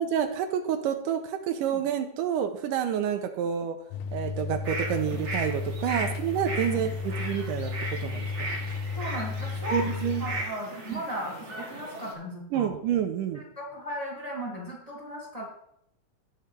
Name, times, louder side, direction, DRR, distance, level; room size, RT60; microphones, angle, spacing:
voice 1, 0.0-3.8 4.1-8.5 9.7-10.3 10.9-11.0 12.5-13.4, right 9 dB, 85° right, 6 dB, 2.3 m, -29 dB
sound 1, 3.9-10.4, left 4 dB, 80° left, 1.8 m, -33 dB
sound 2, 4.6-12.1, right 2 dB, 50° right, 0.8 m, -37 dB
voice 2, 8.9-9.8 10.2-12.7 13.5-15.5, equal, 15° left, -4 dB, 1.4 m, -36 dB
17.0 x 5.7 x 3.3 m, 0.73 s
omnidirectional pair, 3.7 m